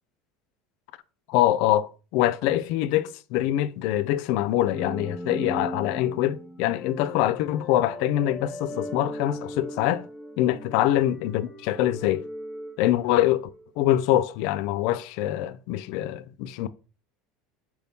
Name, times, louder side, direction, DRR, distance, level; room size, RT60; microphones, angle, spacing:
voice 1, 1.3-10.0 10.4-12.2 12.8-13.5 13.8-16.7, left 13 dB, 70° left, 0.3 m, -24 dB
sound 1, 4.7-13.7, equal, 15° left, 0.9 m, -38 dB
4.6 x 2.7 x 3.5 m
supercardioid pair, 120°, 0 cm